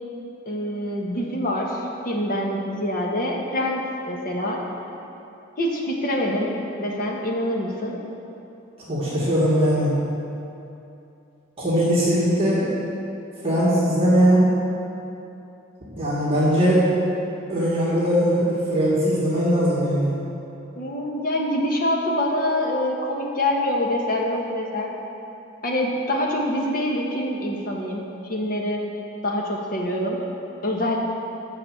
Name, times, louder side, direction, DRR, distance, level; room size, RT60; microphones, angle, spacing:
voice 1, 0.4-4.6 5.6-8.0 20.7-24.9 25.6-28.8 29.2-30.2 30.6-31.0, left 1 dB, 45° left, -2 dB, 1.5 m, -25 dB
voice 2, 8.9-9.9 11.6-12.7 13.4-14.5 16.0-16.9 17.5-20.1, equal, 30° right, -8 dB, 2.1 m, -20 dB
9.7 x 6.5 x 7.4 m, 2.8 s
head